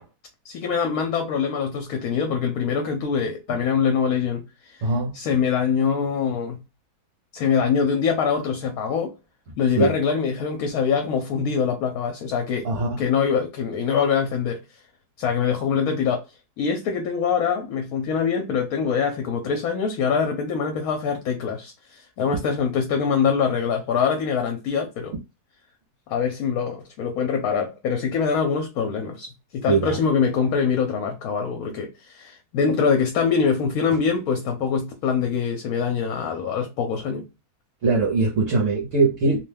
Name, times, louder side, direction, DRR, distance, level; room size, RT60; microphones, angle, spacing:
voice 1, 0.5-4.8 5.1-6.6 7.3-9.1 9.6-12.7 13.0-14.6 15.2-16.2 16.6-25.1 26.1-37.2, left 6 dB, 75° left, 1.0 m, -24 dB
voice 2, 4.8-5.1 9.8-9.9 12.6-13.0 29.7-30.0 37.8-39.4, right 3 dB, 60° right, 1.0 m, -21 dB
2.7 x 2.2 x 3.2 m
omnidirectional pair, 1.7 m